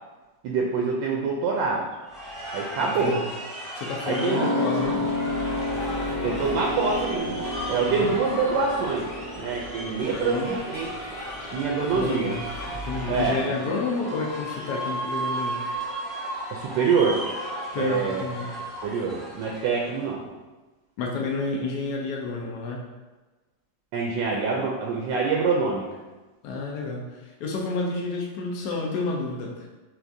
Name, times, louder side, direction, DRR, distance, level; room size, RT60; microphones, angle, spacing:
voice 1, 0.4-1.9 2.5-3.2 4.1-4.4 6.2-7.4 7.7-9.1 9.4-10.9 11.5-12.4 13.1-13.5 16.5-17.2 17.8-18.3 18.8-20.3 23.9-25.8, right 4 dB, 80° right, -1 dB, 1.2 m, -25 dB
sound 1, 2.0-20.1, right 1 dB, ahead, 0.5 m, -35 dB
voice 2, 3.8-5.1 7.8-8.1 10.1-10.6 11.9-12.4 12.9-15.6 17.7-18.5 21.0-22.8 26.4-29.7, left 3 dB, 70° left, -1 dB, 1.1 m, -30 dB
sound 2, 4.3-11.4 11.7-11.8, left 2 dB, 35° right, 0.8 m, -31 dB
sound 3, 4.8-13.3, left 1 dB, 40° left, 1.0 m, -39 dB
5.8 x 2.4 x 2.6 m, 1.2 s
omnidirectional pair, 2.0 m